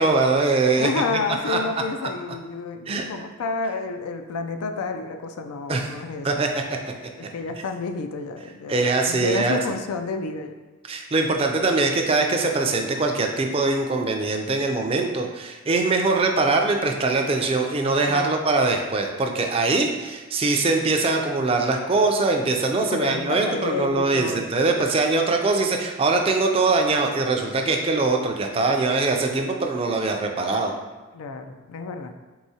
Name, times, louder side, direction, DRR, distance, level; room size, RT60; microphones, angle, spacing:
voice 1, 0.0-0.9 1.5-1.6 2.9-3.1 5.7-5.9 6.2-6.5 8.7-9.6 10.9-30.7, right 3 dB, 25° right, 3 dB, 0.3 m, -22 dB
voice 2, 0.8-6.3 7.2-10.5 18.1-18.4 22.8-24.5 31.1-32.1, left 4 dB, 90° left, 6 dB, 0.4 m, -30 dB
4.6 x 3.7 x 2.7 m, 1.2 s
head